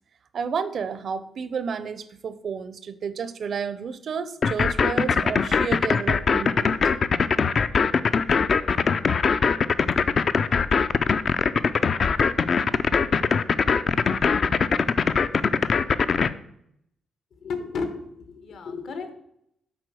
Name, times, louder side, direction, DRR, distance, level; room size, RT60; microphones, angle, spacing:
voice 1, 0.3-6.8, right 6 dB, 50° right, 14 dB, 0.5 m, -31 dB
sound 1, 4.4-16.3, left 5 dB, 40° left, 0.3 m, -21 dB
voice 2, 17.4-19.1, left 4 dB, 70° left, 8 dB, 1.2 m, -33 dB
7.6 x 4.3 x 6.2 m, 0.74 s
cardioid pair, 145°, 0 cm